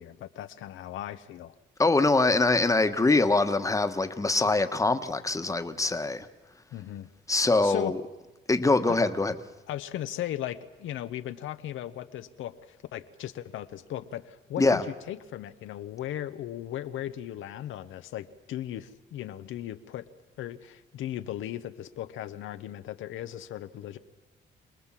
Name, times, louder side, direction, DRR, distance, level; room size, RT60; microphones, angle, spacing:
voice 1, 0.0-1.5 6.7-7.1 7.6-7.9 8.9-9.0 9.7-20.1 20.4-24.0, left 12 dB, 80° left, 0.9 m, -37 dB
voice 2, 1.8-6.3 7.3-8.0 8.5-9.3 14.6-14.8, left 3 dB, 15° left, 1.3 m, -23 dB
25.5 x 19.0 x 7.5 m
cardioid pair, 90°, 20 cm